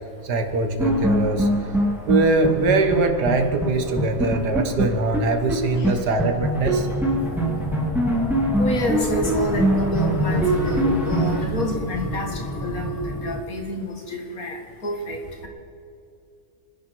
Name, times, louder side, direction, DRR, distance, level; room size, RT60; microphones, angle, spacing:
voice 1, 0.2-1.5 2.1-6.9, right 3 dB, 80° right, 6 dB, 1.9 m, -22 dB
sound 1, 0.8-3.3 3.6-3.7 4.0-5.6 5.8-5.9 6.2-11.4, right 1 dB, ahead, 2.5 m, -23 dB
sound 2, 6.5-13.4, equal, 15° left, 0.8 m, -31 dB
voice 2, 8.6-14.6 14.8-15.5, left 1 dB, 60° left, 2 dB, 2.4 m, -28 dB
28.5 x 10.5 x 4.6 m, 2.6 s
omnidirectional pair, 1.7 m